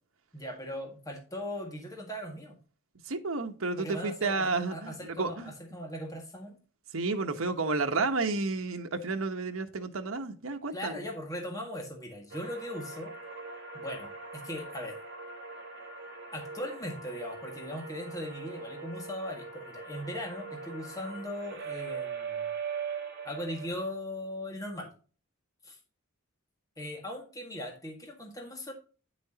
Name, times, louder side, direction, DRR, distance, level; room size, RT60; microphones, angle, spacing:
voice 1, 0.3-2.5 3.8-6.6 10.7-13.1 13.7-15.0 16.3-22.5 23.2-24.9 25.6-25.8 26.8-28.7, left 1 dB, 15° left, 1.8 m, -39 dB
voice 2, 3.1-5.5 6.9-11.0, right 3 dB, 75° right, 1.1 m, -31 dB
sound 1, 12.3-23.7, right 5 dB, 55° right, 2.2 m, -41 dB
9.9 x 6.2 x 2.8 m
head